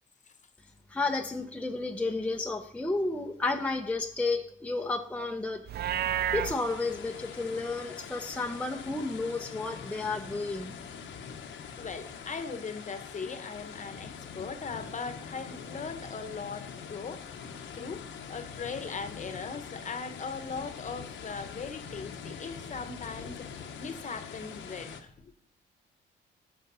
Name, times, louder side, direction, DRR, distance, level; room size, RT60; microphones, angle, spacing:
voice 1, 0.9-5.6 6.3-10.7, left 3 dB, 5° left, 3 dB, 0.7 m, -32 dB
Livestock farm animals working animals, 5.7-6.6, right 10 dB, 55° right, 0.4 m, -29 dB
sound 1, 6.4-25.0, left 7 dB, 70° left, 1.0 m, -44 dB
voice 2, 11.7-17.2 17.7-18.0 18.3-25.3, left 5 dB, 40° left, 9 dB, 1.1 m, -39 dB
14.5 x 5.2 x 4.0 m, 0.63 s
cardioid pair, 90°, 20 cm